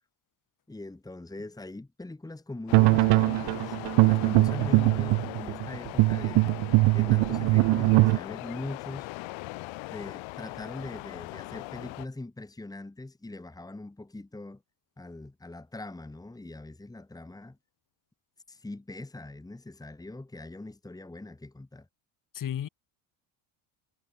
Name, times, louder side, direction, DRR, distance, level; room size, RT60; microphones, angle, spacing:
voice 1, 0.7-3.8 4.0-9.1 9.9-14.6 15.0-17.6 18.5-21.9, left 2 dB, 10° left, 2.8 m, -42 dB
sound 1, 2.7-12.1, left 23 dB, 75° left, 1.6 m, -40 dB
sound 2, 2.7-8.2, right 22 dB, 60° right, 0.7 m, -22 dB
voice 2, 4.5-4.9 22.3-22.7, left 10 dB, 40° left, 5.3 m, -35 dB
cardioid pair, 130°, 47 cm